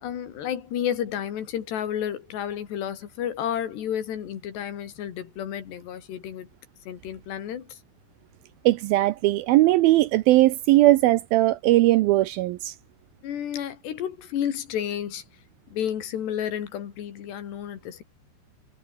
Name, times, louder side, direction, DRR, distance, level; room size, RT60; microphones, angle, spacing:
voice 1, 0.0-6.5 6.9-7.8 13.2-15.2 15.7-18.0, left 9 dB, 80° left, 4.7 m, -31 dB
voice 2, 8.7-12.7, right 17 dB, 80° right, 2.2 m, -19 dB
omnidirectional pair, 4.8 m